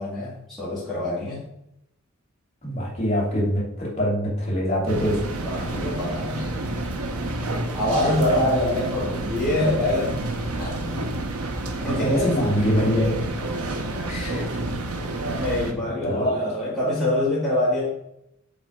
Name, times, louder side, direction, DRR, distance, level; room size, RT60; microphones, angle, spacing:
voice 1, 0.0-1.5 4.9-5.1 5.4-6.5 7.7-10.2 10.6-11.1 11.8-12.5 15.3-17.9, left 1 dB, ahead, -10 dB, 2.0 m, -25 dB
voice 2, 2.6-5.2 11.8-13.2 14.0-14.6 15.2-15.4 15.7-16.3, equal, 30° left, -5 dB, 3.0 m, -24 dB
sound 1, 4.9-15.7, right 2 dB, 75° right, 1.0 m, -29 dB
7.1 x 4.2 x 5.0 m, 0.79 s
head